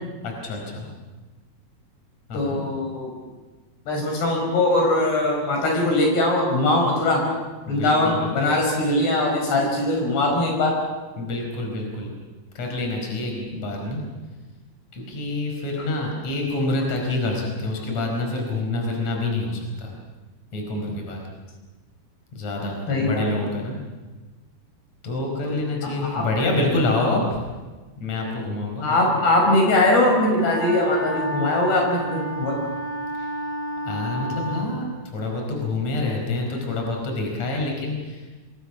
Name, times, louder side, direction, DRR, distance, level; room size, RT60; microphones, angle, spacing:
voice 1, 0.2-0.9 2.3-2.6 7.7-8.3 11.2-12.1 12.6-14.0 14.9-19.9 20.5-21.2 22.3-23.8 25.0-27.4 28.0-29.2 33.2-33.3 33.9-34.8 35.1-38.2, left 2 dB, 45° left, 1 dB, 5.8 m, -27 dB
voice 2, 2.3-3.1 3.9-7.2 7.7-10.7 22.9-23.3 25.4-25.5 25.8-26.2 28.8-32.5, left 2 dB, 85° left, 0 dB, 7.9 m, -21 dB
Wind instrument woodwind instrument, 30.3-34.7, right 1 dB, 40° right, 5.8 m, -31 dB
26.5 x 24.5 x 6.1 m, 1.2 s
omnidirectional pair, 4.6 m